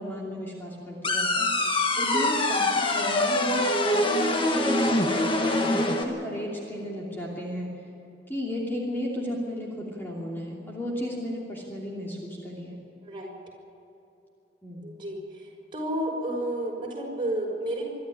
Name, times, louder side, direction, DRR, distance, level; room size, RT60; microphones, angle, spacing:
voice 1, 0.0-1.5 2.0-7.7 8.3-12.7 14.6-14.9, left 1 dB, 15° left, -4 dB, 2.9 m, -34 dB
sound 1, 1.0-6.0, left 2 dB, 30° left, 1.6 m, -24 dB
voice 2, 2.0-2.3 13.0-13.3 14.8-15.4 15.7-17.8, right 1 dB, 30° right, -1 dB, 5.8 m, -31 dB
25.0 x 12.5 x 9.9 m, 2.8 s
head